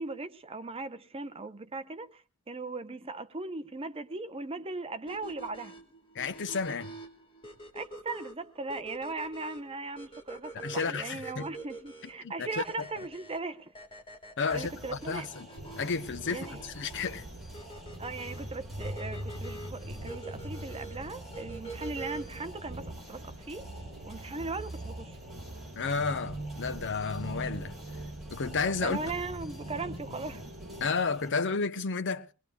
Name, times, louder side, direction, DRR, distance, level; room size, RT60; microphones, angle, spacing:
voice 1, 0.0-5.7 7.7-13.7 14.5-15.3 16.3-16.6 18.0-23.7 24.0-25.2 28.8-30.5, right 3 dB, 25° right, 0.7 m, -38 dB
sound 1, 5.1-22.5, right 2 dB, 25° left, 1.8 m, -46 dB
voice 2, 6.1-6.9 10.6-11.5 12.2-12.5 14.4-15.5 15.8-17.2 25.8-27.7 28.3-29.0 30.8-32.3, left 4 dB, 55° left, 0.8 m, -32 dB
sound 2, 14.5-31.3, equal, ahead, 7.2 m, -50 dB
sound 3, 15.6-30.9, right 1 dB, 70° right, 1.2 m, -42 dB
23.0 x 20.0 x 2.3 m
head